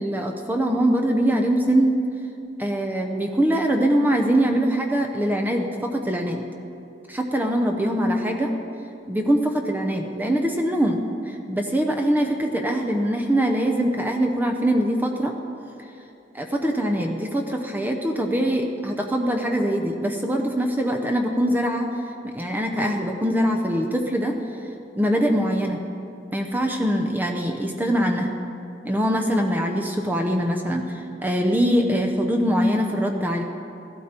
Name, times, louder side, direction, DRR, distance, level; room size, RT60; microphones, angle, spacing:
voice 1, 0.0-2.0 2.6-6.4 7.1-8.5 9.1-15.3 16.3-21.9 22.3-24.4 24.9-25.8 26.3-28.3 28.8-33.4, equal, 10° right, 2 dB, 0.7 m, -23 dB
15.0 x 12.0 x 4.4 m, 2.7 s
head